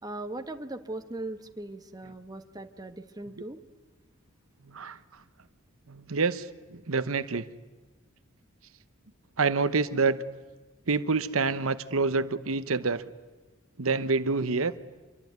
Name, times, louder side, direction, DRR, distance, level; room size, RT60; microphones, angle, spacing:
voice 1, 0.0-3.6, right 2 dB, 20° right, 6 dB, 1.4 m, -39 dB
voice 2, 4.7-5.0 5.9-7.4 9.4-10.2 10.9-13.0 13.8-14.7, right 4 dB, 80° right, 13 dB, 1.0 m, -27 dB
26.5 x 23.0 x 9.5 m, 1.2 s
head